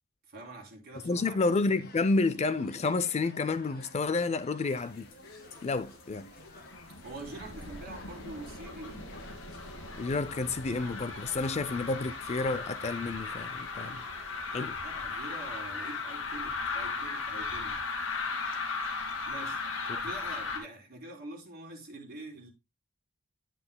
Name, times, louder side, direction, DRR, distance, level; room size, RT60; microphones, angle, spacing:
voice 1, 0.3-1.4 7.0-9.1 14.8-17.8 19.3-19.6 20.0-22.5, right 2 dB, 45° right, 3.4 m, -45 dB
sound 1, 0.9-10.2, left 2 dB, 45° left, 1.7 m, -53 dB
voice 2, 1.0-5.1 5.6-6.3 10.0-14.0 14.5-14.8 19.9-20.0, left 3 dB, 30° left, 0.4 m, -30 dB
sound 2, 4.7-5.6 5.9-20.6, left 4 dB, 65° left, 2.2 m, -37 dB
10.0 x 8.6 x 2.2 m
head